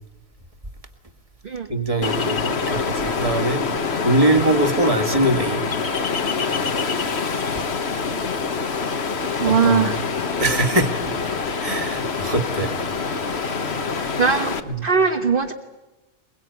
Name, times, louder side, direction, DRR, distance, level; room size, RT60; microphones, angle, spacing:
voice 1, 1.7-3.6 4.0-5.6 9.5-10.0 10.4-10.9 11.6-12.7 14.7-14.9, right 2 dB, 25° right, 6 dB, 2.1 m, -22 dB
Ocean, 2.0-14.6, left 5 dB, 50° left, 1.5 m, -25 dB
voice 2, 9.4-10.0 14.2-14.5 14.8-15.5, right 5 dB, 40° right, 3 dB, 1.5 m, -19 dB
23.0 x 22.5 x 9.2 m, 1.1 s
omnidirectional pair, 1.4 m